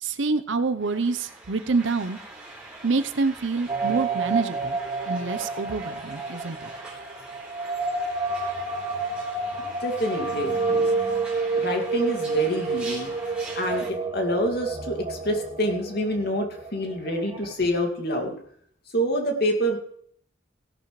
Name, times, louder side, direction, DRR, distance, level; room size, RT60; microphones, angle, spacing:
voice 1, 0.0-2.2 2.8-4.8 5.1-6.7, right 4 dB, 75° right, 11 dB, 0.8 m, -26 dB
sound 1, 0.8-13.9, right 2 dB, 5° right, 3.8 m, -43 dB
sound 2, 3.7-17.5, right 3 dB, 30° right, 1.6 m, -29 dB
voice 2, 9.6-10.9 11.6-13.1 13.6-18.3 18.9-19.8, equal, 55° left, 3 dB, 2.3 m, -27 dB
17.5 x 11.0 x 3.2 m, 0.63 s
head